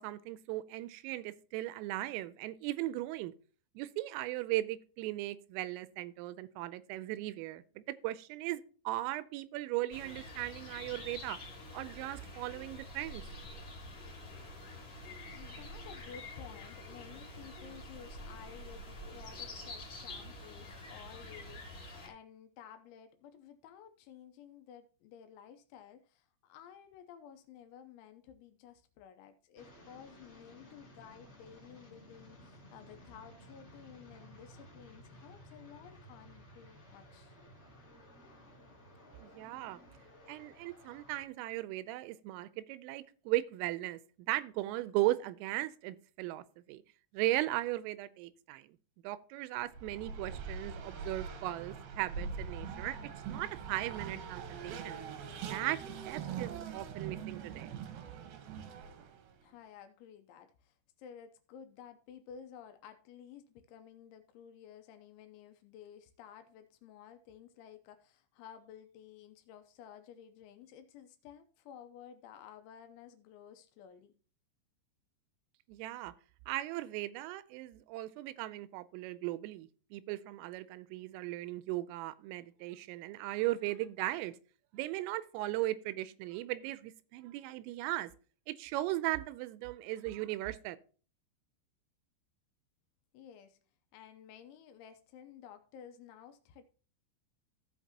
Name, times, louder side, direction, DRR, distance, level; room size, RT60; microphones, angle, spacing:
voice 1, 0.0-3.3 3.8-11.4 11.7-13.2 39.2-39.8 40.3-44.0 44.3-46.8 47.1-48.8 49.0-53.0 53.3-55.0 55.5-57.7 75.7-76.1 76.5-84.3 84.7-88.1 88.5-90.8, right 16 dB, 90° right, 3.2 m, -37 dB
sound 1, 9.9-22.1, left 2 dB, 35° left, 2.7 m, -47 dB
voice 2, 15.3-37.4 59.4-74.1 93.1-93.6 93.9-96.6, left 8 dB, 80° left, 2.9 m, -54 dB
sound 2, 29.5-41.2, equal, 20° left, 1.7 m, -56 dB
Race car auto racing, 49.7-59.3, right 6 dB, 70° right, 2.3 m, -43 dB
15.5 x 5.8 x 2.8 m
omnidirectional pair, 5.8 m